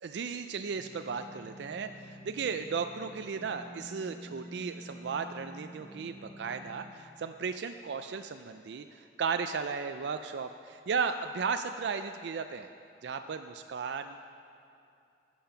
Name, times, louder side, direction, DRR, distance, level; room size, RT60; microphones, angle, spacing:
voice 1, 0.0-12.7 13.0-14.3, right 5 dB, 70° right, 8 dB, 0.4 m, -35 dB
sound 1, 0.7-6.9, equal, 10° left, 1.1 m, -49 dB
13.5 x 8.5 x 5.7 m, 2.6 s
head